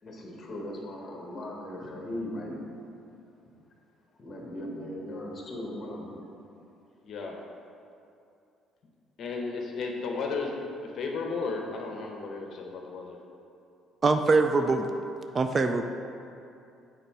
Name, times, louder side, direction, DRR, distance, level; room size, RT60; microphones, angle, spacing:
voice 1, 0.0-2.6 4.2-6.2, left 1 dB, 30° left, -1 dB, 1.3 m, -38 dB
voice 2, 7.0-7.4 9.2-13.2, left 4 dB, 55° left, 1 dB, 0.8 m, -34 dB
voice 3, 14.0-14.9 15.3-15.8, right 3 dB, 30° right, 7 dB, 0.3 m, -23 dB
6.7 x 4.1 x 4.6 m, 2.6 s
cardioid pair, 115°, 0 cm